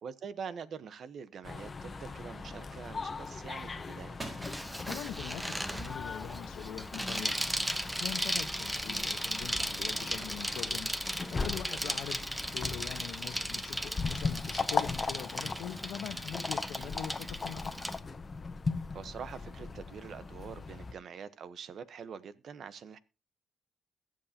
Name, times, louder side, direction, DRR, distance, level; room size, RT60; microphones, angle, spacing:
voice 1, 0.0-4.2 11.7-12.0 16.8-16.9 18.9-23.0, right 6 dB, 60° right, 1.0 m, -45 dB
sound 1, 1.4-20.9, left 4 dB, 30° left, 1.1 m, -39 dB
sound 2, 2.0-3.0 3.3-6.9 7.4-7.5 7.8-7.9 8.1-14.5 15.0-16.9, right 1 dB, 30° right, 4.6 m, -54 dB
Bicycle, 4.4-18.0, equal, 5° right, 1.1 m, -36 dB
voice 2, 4.9-17.8, left 10 dB, 85° left, 1.1 m, -43 dB
21.5 x 7.6 x 2.9 m
cardioid pair, 90°, 0 cm